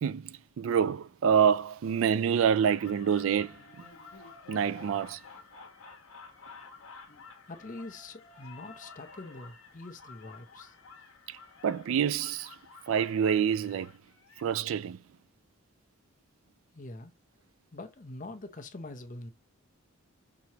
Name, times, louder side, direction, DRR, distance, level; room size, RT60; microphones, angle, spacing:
voice 1, 0.0-3.5 4.5-5.2 11.3-11.4 11.6-12.6 12.9-13.9 14.4-15.0, right 7 dB, 70° right, 0.3 m, -27 dB
sound 1, 2.5-14.5, left 4 dB, 75° left, 1.2 m, -51 dB
voice 2, 7.5-10.7 16.7-17.1 17.7-19.3, left 2 dB, 35° left, 0.7 m, -44 dB
6.1 x 3.0 x 2.8 m
head